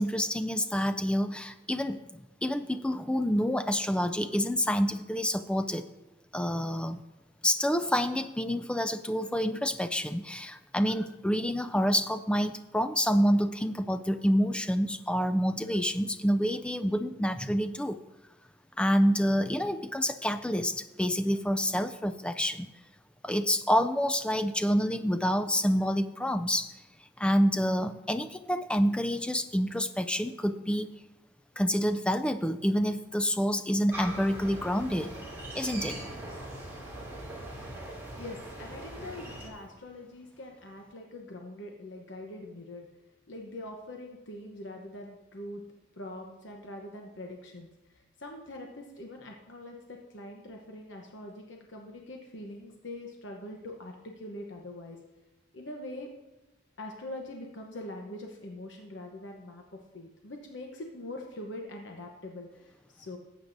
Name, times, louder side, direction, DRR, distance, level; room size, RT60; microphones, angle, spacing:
voice 1, 0.0-2.0 2.4-5.9 6.3-7.0 7.4-18.0 18.8-22.7 23.2-26.7 27.2-30.9 31.6-35.1 35.6-36.0, equal, 5° left, 10 dB, 0.3 m, -28 dB
sound 1, 33.9-39.5, right 1 dB, 10° right, 2.4 m, -41 dB
voice 2, 38.2-42.9 43.3-45.6 46.0-47.7 48.2-55.0 55.5-56.1 56.8-63.2, left 1 dB, 65° left, 1 dB, 0.9 m, -43 dB
17.5 x 8.1 x 2.6 m, 1.1 s
head